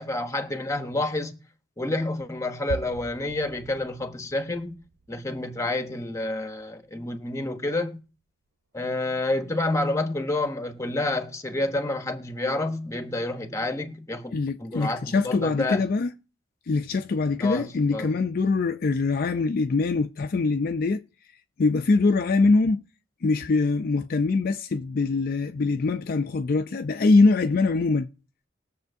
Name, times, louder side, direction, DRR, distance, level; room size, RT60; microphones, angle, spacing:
voice 1, 0.0-1.4 1.8-4.8 5.1-8.0 8.7-15.8 17.4-18.1, left 2 dB, 15° left, 0.9 m, -29 dB
sound 1, 2.7-7.6 8.0-8.2 8.5-8.6 8.9-10.4 10.7-11.1 12.7-13.3 13.7-13.8, right 3 dB, 75° right, 0.6 m, -45 dB
voice 2, 14.3-16.1 16.7-21.0 21.6-22.8 23.2-28.1, left 3 dB, 50° left, 0.4 m, -23 dB
20.5 x 7.0 x 2.6 m
head